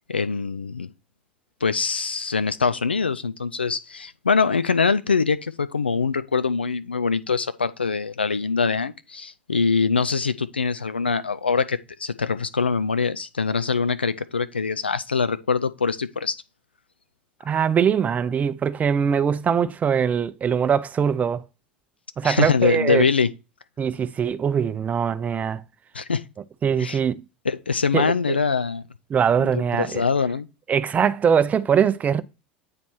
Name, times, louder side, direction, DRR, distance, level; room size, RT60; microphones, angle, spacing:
voice 1, 0.1-0.9 1.6-16.4 22.2-23.3 25.9-26.2 26.8-27.0 27.5-28.8 29.5-30.5, left 5 dB, 85° left, 0.4 m, -23 dB
voice 2, 17.4-21.4 22.2-23.1 23.8-25.6 26.6-27.2 27.9-28.4 29.1-30.0 30.7-32.2, right 7 dB, 30° right, 0.6 m, -22 dB
8.6 x 3.1 x 4.5 m
figure-of-eight pair, 75°, 6 cm